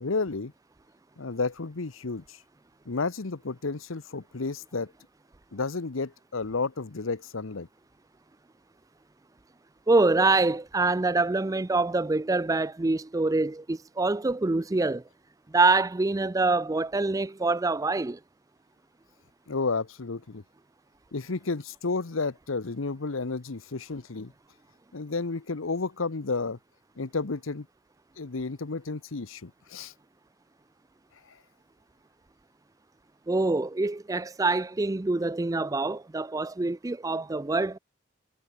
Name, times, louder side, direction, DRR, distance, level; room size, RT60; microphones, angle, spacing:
voice 1, 0.0-0.5 1.2-2.4 2.9-4.9 5.5-7.7 19.5-20.4 21.1-24.3 24.9-26.6 27.0-27.7 28.2-29.9, left 3 dB, 80° left, 1.0 m, -31 dB
voice 2, 9.9-15.0 15.5-18.2 33.3-37.8, right 3 dB, 15° right, 0.4 m, -25 dB
head